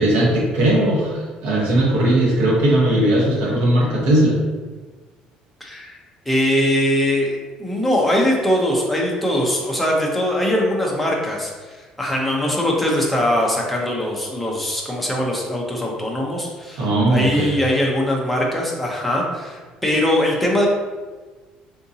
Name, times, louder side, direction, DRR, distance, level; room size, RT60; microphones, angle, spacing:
voice 1, 0.0-4.4 16.8-17.5, right 1 dB, 65° right, -4 dB, 1.0 m, -18 dB
voice 2, 5.6-6.0 6.3-7.3 7.6-20.7, left 1 dB, 5° left, -2 dB, 0.5 m, -21 dB
3.7 x 2.6 x 2.6 m, 1.3 s
cardioid pair, 175°, 2 cm